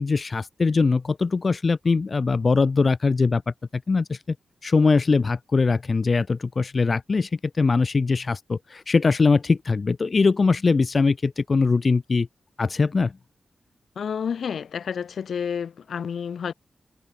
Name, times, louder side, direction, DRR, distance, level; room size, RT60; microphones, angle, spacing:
voice 1, 0.0-3.4 3.7-4.3 4.6-12.3 12.6-13.1, left 4 dB, 50° left, 1.6 m, -21 dB
voice 2, 14.0-16.5, left 7 dB, 80° left, 2.5 m, -30 dB
cardioid pair, 60°, 0 cm